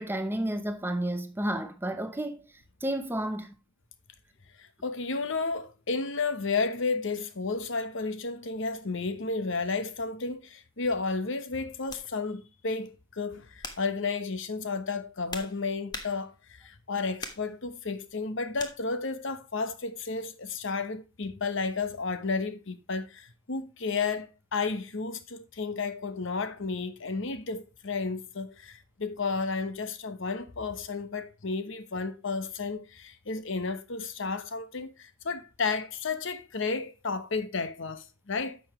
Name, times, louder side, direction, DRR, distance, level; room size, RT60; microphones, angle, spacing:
voice 1, 0.0-2.4 2.8-3.5, right 1 dB, 10° right, 0.8 m, -31 dB
voice 2, 4.6-38.6, left 4 dB, 60° left, 1.0 m, -32 dB
sound 1, 10.6-10.8 11.9-12.1 12.8-13.0 13.6-13.9 14.8-16.5 17.2-17.5 18.6-18.8, left 3 dB, 20° left, 1.2 m, -41 dB
10.5 x 7.1 x 3.0 m
head